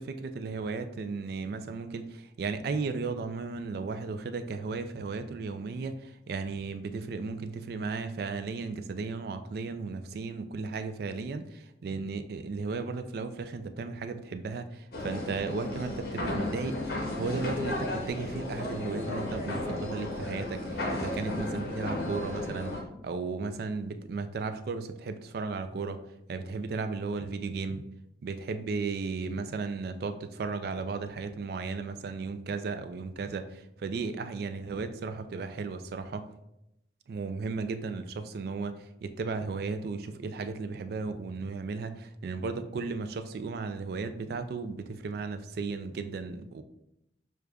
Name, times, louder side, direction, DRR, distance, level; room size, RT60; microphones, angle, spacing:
voice 1, 0.0-16.8 17.2-22.7 23.0-26.0 26.3-27.9 28.2-36.3 37.1-46.6, right 4 dB, 55° right, 9 dB, 0.3 m, -35 dB
sound 1, 14.9-22.8, left 1 dB, 55° left, 0.7 m, -34 dB
6.4 x 2.3 x 2.2 m, 0.86 s
head